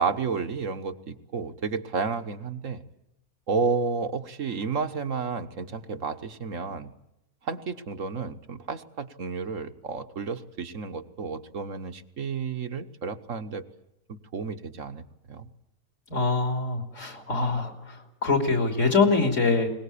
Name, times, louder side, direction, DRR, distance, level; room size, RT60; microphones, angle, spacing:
voice 1, 0.0-2.8 3.5-6.9 7.4-13.6 14.3-15.5, right 5 dB, 65° right, 8 dB, 1.6 m, -31 dB
voice 2, 16.1-17.7 18.2-19.7, left 4 dB, 60° left, 5 dB, 3.6 m, -23 dB
22.0 x 20.0 x 8.5 m, 0.85 s
omnidirectional pair, 1.5 m